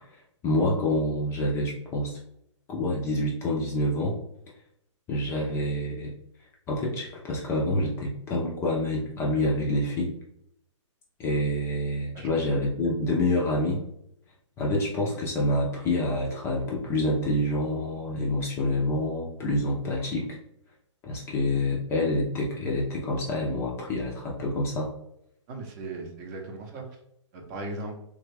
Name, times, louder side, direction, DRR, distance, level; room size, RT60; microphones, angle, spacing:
voice 1, 0.4-2.2 2.7-4.2 5.1-6.1 6.7-10.1 11.2-13.8 14.6-20.4 21.0-24.9, left 1 dB, 15° left, -3 dB, 0.5 m, -27 dB
voice 2, 25.5-26.8 27.3-27.9, right 2 dB, 30° right, 2 dB, 0.7 m, -37 dB
3.3 x 2.3 x 3.2 m, 0.74 s
hypercardioid pair, 150°, 16 cm